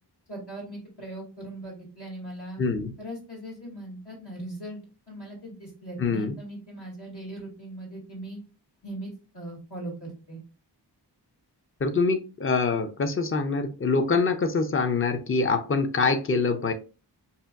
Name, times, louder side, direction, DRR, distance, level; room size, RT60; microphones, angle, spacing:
voice 1, 0.3-2.6 3.0-4.8 5.1-8.4 8.8-10.4, right 1 dB, 65° left, -4 dB, 2.1 m, -39 dB
voice 2, 2.6-2.9 6.0-6.3 11.8-16.7, left 4 dB, 30° left, 7 dB, 0.5 m, -25 dB
5.6 x 2.5 x 2.3 m, 0.33 s
wide cardioid pair, 75°, 43 cm